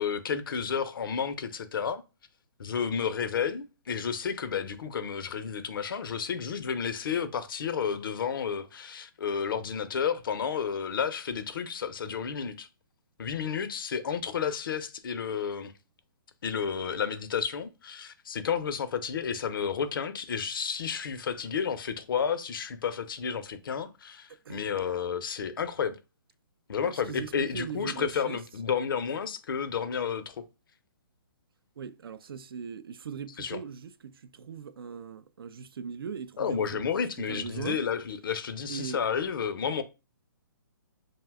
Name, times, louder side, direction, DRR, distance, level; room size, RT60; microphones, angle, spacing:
voice 1, 0.0-2.0 2.6-12.7 13.2-15.7 16.4-26.0 26.7-30.4 33.4-33.6 36.4-39.8, left 7 dB, 70° left, 0.5 m, -31 dB
voice 2, 24.3-24.8 26.8-28.4 31.8-36.8 37.3-37.8 38.7-39.0, right 6 dB, 85° right, 0.4 m, -40 dB
2.7 x 2.1 x 3.4 m
hypercardioid pair, 150°, 12 cm